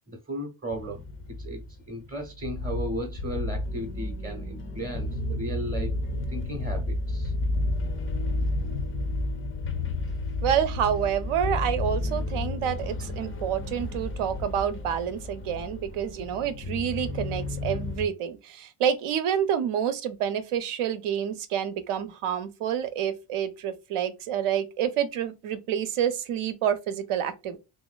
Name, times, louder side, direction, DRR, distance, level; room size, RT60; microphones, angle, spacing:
voice 1, 0.1-1.0 1.3-6.0 6.3-7.3 13.0-13.1, equal, 20° right, 0.6 m, -35 dB
sound 1, 0.7-18.1, left 2 dB, 30° left, 0.3 m, -31 dB
voice 2, 10.4-27.6, right 9 dB, 90° right, 0.7 m, -28 dB
3.0 x 2.6 x 2.3 m
cardioid pair, 140°, 50 cm